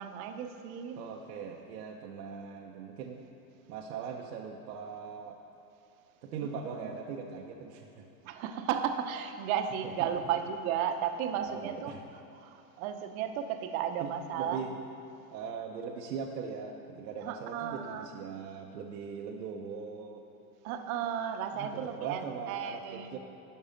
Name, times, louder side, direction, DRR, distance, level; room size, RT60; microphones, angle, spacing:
voice 1, 0.0-1.0 6.4-6.5 8.2-11.9 12.4-14.6 17.2-18.1 20.6-23.2, right 8 dB, 60° right, 7 dB, 0.8 m, -34 dB
voice 2, 1.0-3.2 3.7-5.4 6.2-8.0 9.8-9.9 11.5-12.0 14.0-14.7 15.3-20.2 21.5-23.2, right 6 dB, 90° right, 0 dB, 0.9 m, -40 dB
11.0 x 5.5 x 5.1 m, 3.0 s
supercardioid pair, 135°, 47 cm